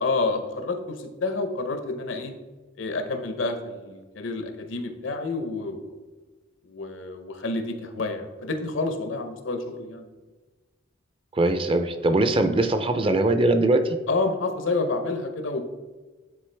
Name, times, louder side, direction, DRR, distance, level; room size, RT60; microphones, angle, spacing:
voice 1, 0.0-2.3 2.8-5.9 6.6-10.1 14.1-15.6, left 3 dB, 75° left, 7 dB, 0.8 m, -29 dB
voice 2, 11.3-14.0, right 2 dB, 25° right, 8 dB, 0.4 m, -21 dB
9.3 x 3.8 x 3.3 m, 1.3 s
head